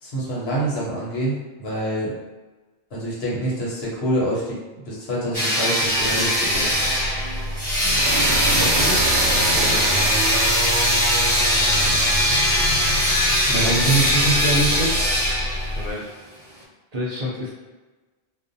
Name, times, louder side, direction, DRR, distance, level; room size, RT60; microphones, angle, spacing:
voice 1, 0.0-2.1 2.9-6.8 13.5-15.0, right 1 dB, 90° left, -6 dB, 1.1 m, -25 dB
sound 1, 5.3-15.9, left 1 dB, 10° left, 1.0 m, -21 dB
sound 2, 5.8-15.9, right 1 dB, 80° right, 0.8 m, -26 dB
voice 2, 8.5-10.2 15.7-16.0 16.9-17.5, left 2 dB, 50° right, -6 dB, 0.6 m, -32 dB
2.5 x 2.1 x 2.6 m, 1.2 s
omnidirectional pair, 1.0 m